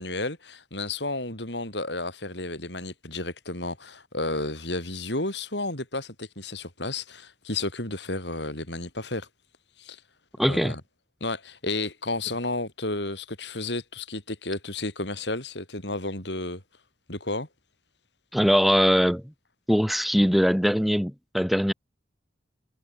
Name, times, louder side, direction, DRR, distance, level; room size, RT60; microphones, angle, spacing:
voice 1, 0.0-9.3 9.8-10.0 10.5-10.8 11.2-16.6 17.1-17.5, left 2 dB, 75° left, 7.9 m, -32 dB
voice 2, 10.4-10.8 18.3-19.2 19.7-21.7, equal, ahead, 1.9 m, -21 dB
head